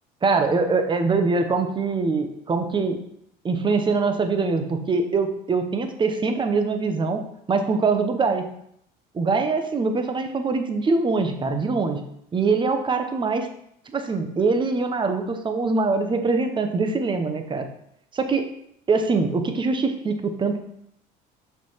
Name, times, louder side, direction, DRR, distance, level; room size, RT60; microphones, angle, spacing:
voice 1, 0.2-3.0 3.4-8.5 9.1-12.0 12.3-13.5 13.9-17.7 18.1-18.5 18.9-20.6, right 4 dB, 25° right, 7 dB, 1.0 m, -23 dB
5.8 x 5.6 x 4.6 m, 0.72 s
cardioid pair, 115°, 20 cm